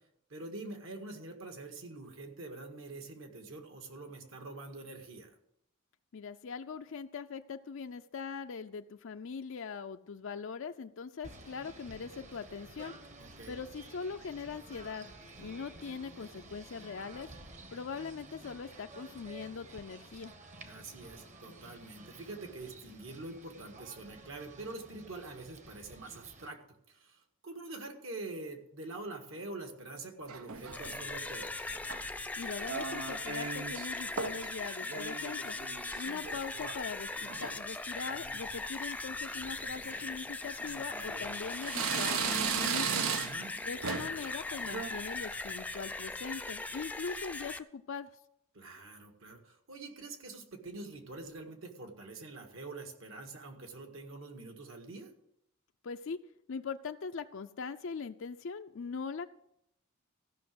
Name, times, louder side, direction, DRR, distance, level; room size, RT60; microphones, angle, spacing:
voice 1, 0.3-5.4 13.2-13.6 20.7-26.6 26.9-31.6 43.1-43.5 48.5-55.1, right 2 dB, 65° right, 4 dB, 1.8 m, -45 dB
voice 2, 6.1-12.9 13.5-15.1 15.4-17.3 17.7-20.3 32.4-35.6 36.0-43.1 43.7-48.1 55.8-56.2 56.5-59.3, left 5 dB, 65° left, 7 dB, 0.5 m, -41 dB
Singing / Bird, 11.2-26.5, right 2 dB, 35° right, 1.1 m, -52 dB
sound 1, 30.3-31.0 31.7-32.2 32.6-33.9 34.2-34.5 34.8-36.8 37.1-37.6 38.1-38.5 38.8-38.9 39.8-40.0 40.6-41.3 41.6-43.5 43.8-44.2 44.6-44.9, right 6 dB, 90° right, 0.9 m, -36 dB
sound 2, 30.5-47.6, left 3 dB, 5° left, 0.4 m, -40 dB
15.0 x 6.0 x 7.8 m, 0.79 s
head